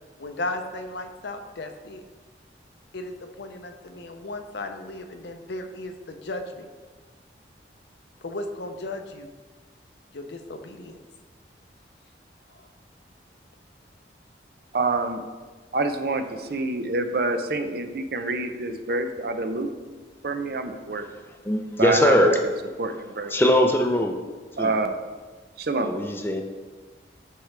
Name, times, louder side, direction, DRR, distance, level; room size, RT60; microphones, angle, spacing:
voice 1, 0.2-2.0 2.9-6.7 8.2-9.3 10.1-11.0 12.5-12.7, left 2 dB, 70° left, 6 dB, 0.7 m, -35 dB
voice 2, 14.7-15.2 15.7-19.7 20.2-21.1 21.8-22.3 22.8-23.3 24.6-25.0 25.6-25.9, right 3 dB, 55° right, 7 dB, 0.6 m, -27 dB
voice 3, 21.4-22.4 23.3-24.2 24.6-24.7 25.8-26.4, left 1 dB, 10° left, 4 dB, 0.6 m, -21 dB
10.0 x 4.6 x 3.3 m, 1.4 s
head